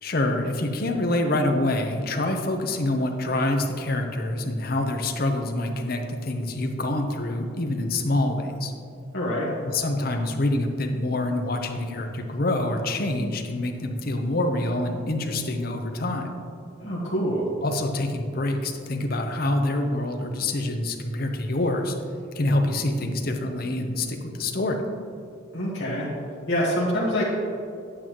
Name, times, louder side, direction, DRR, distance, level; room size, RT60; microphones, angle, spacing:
voice 1, 0.0-8.7 9.7-16.3 17.6-21.9 22.3-24.8, left 1 dB, 45° left, 4 dB, 0.7 m, -26 dB
voice 2, 9.1-9.5 16.8-17.5 25.5-26.1 26.5-27.2, equal, 60° left, -7 dB, 1.3 m, -25 dB
8.7 x 8.7 x 3.0 m, 2.5 s
head